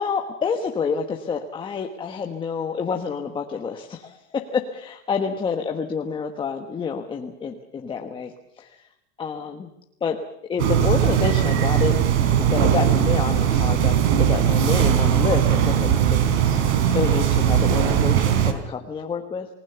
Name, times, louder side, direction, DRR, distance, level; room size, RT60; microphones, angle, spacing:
voice 1, 0.0-8.9 9.2-9.7 10.0-10.2 10.5-11.9 12.4-16.6 16.9-19.5, left 6 dB, 15° left, 4 dB, 1.3 m, -28 dB
sound 1, 10.6-18.5, right 9 dB, 70° right, 4.0 m, -19 dB
29.5 x 19.5 x 6.9 m, 0.81 s
supercardioid pair, 170°, 34 cm